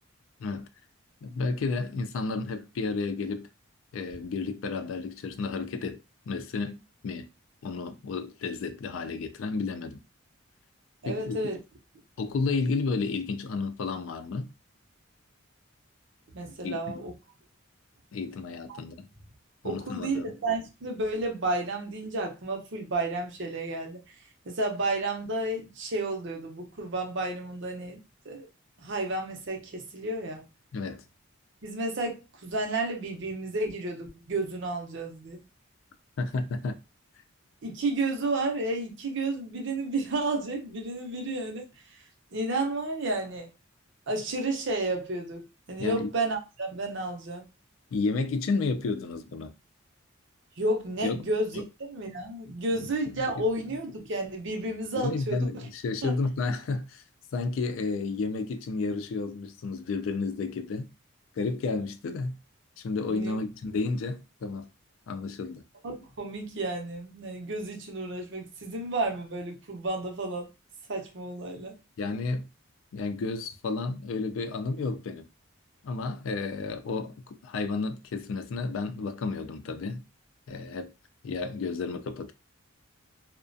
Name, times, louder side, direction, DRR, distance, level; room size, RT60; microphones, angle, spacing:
voice 1, 1.2-3.5 3.9-6.0 6.3-7.3 7.6-10.0 11.0-11.5 12.2-14.5 16.6-16.8 18.1-19.1 19.6-20.3 30.7-31.0 36.2-36.8 45.8-46.1 47.9-49.5 51.0-51.2 51.5-51.6 52.7-53.1 55.0-57.0 57.3-60.9 61.4-62.4 62.8-64.7 65.1-65.6 72.0-72.5 72.9-75.2 75.8-80.0 80.5-80.9 81.2-82.3, left 4 dB, 70° left, 0.3 m, -31 dB
voice 2, 11.0-11.6 16.3-17.1 18.7-18.8 19.6-24.0 24.5-28.5 28.8-30.4 31.6-35.4 37.6-41.6 42.3-43.5 44.1-47.5 50.6-55.6 56.0-56.1 63.1-63.4 65.8-70.5 70.9-71.8, right 2 dB, 60° right, 0.7 m, -31 dB
2.3 x 2.1 x 2.5 m
head